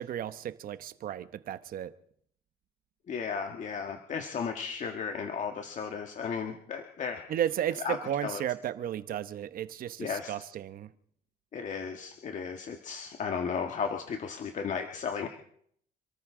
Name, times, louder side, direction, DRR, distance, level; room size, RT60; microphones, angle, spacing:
voice 1, 0.0-1.9 7.3-10.9, right 10 dB, 60° right, 1.0 m, -34 dB
voice 2, 3.1-7.2 7.8-8.4 10.0-10.3 11.5-15.3, left 6 dB, 45° left, 1.6 m, -35 dB
27.5 x 13.5 x 3.8 m
cardioid pair, 110°, 17 cm